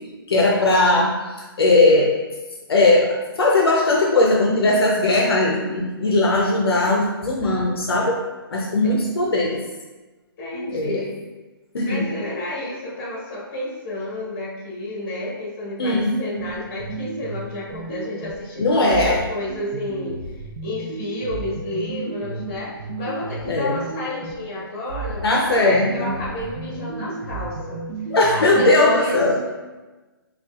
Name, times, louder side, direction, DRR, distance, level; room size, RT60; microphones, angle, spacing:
voice 1, 0.3-1.2 1.6-2.1 2.7-8.2 8.5-9.6 10.5-11.0 11.7-12.1 15.8-16.2 18.6-19.2 23.4-23.7 25.2-26.1 28.1-29.5, left 2 dB, 80° left, -1 dB, 0.6 m, -18 dB
voice 2, 10.4-11.2 11.8-20.2 20.6-27.8 28.3-29.2, left 1 dB, 30° left, -5 dB, 1.3 m, -31 dB
sound 1, 16.4-18.5 18.9-24.5 24.9-28.5, right 3 dB, 50° right, 0.6 m, -33 dB
5.3 x 2.4 x 2.4 m, 1.2 s
hypercardioid pair, 155°, 13 cm